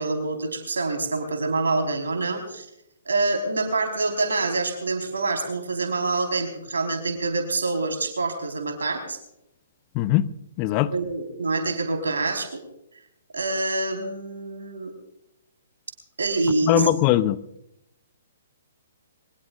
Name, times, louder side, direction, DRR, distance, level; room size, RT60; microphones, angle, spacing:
voice 1, 0.0-2.7 3.0-9.2 10.9-12.6 13.3-14.9 16.2-16.8, right 3 dB, 75° right, 5 dB, 4.5 m, -26 dB
voice 2, 9.9-10.3 10.6-10.9 16.6-17.4, left 14 dB, 35° left, 15 dB, 0.8 m, -20 dB
23.5 x 20.0 x 2.5 m, 0.82 s
figure-of-eight pair, 125°, 0 cm